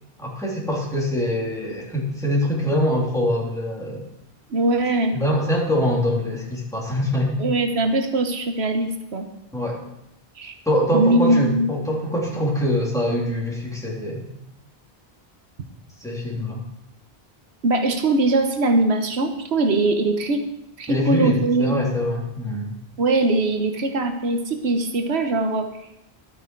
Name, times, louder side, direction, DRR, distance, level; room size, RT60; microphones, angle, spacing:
voice 1, 0.2-4.0 5.1-7.4 9.5-9.8 10.6-14.2 16.0-16.6 20.9-22.7, equal, 5° left, -4 dB, 3.0 m, -24 dB
voice 2, 4.5-5.1 7.4-9.3 10.4-10.5 10.9-11.7 17.6-20.4 20.8-21.8 23.0-25.7, right 2 dB, 90° right, 6 dB, 1.3 m, -21 dB
12.5 x 8.5 x 4.6 m, 0.84 s
omnidirectional pair, 1.1 m